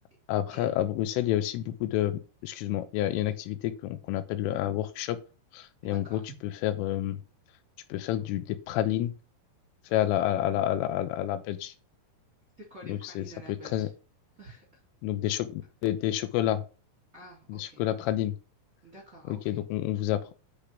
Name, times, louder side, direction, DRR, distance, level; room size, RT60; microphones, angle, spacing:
voice 1, 0.3-5.2 5.5-7.2 7.9-9.1 9.9-11.7 12.8-13.9 15.0-16.6 17.5-18.4 19.3-20.2, left 13 dB, 80° left, 10 dB, 3.4 m, -29 dB
voice 2, 5.8-6.2 12.7-13.9 14.4-14.8 17.1-17.8 18.8-19.6, right 1 dB, 25° right, -2 dB, 1.8 m, -49 dB
10.5 x 5.1 x 5.9 m, 0.33 s
omnidirectional pair, 5.8 m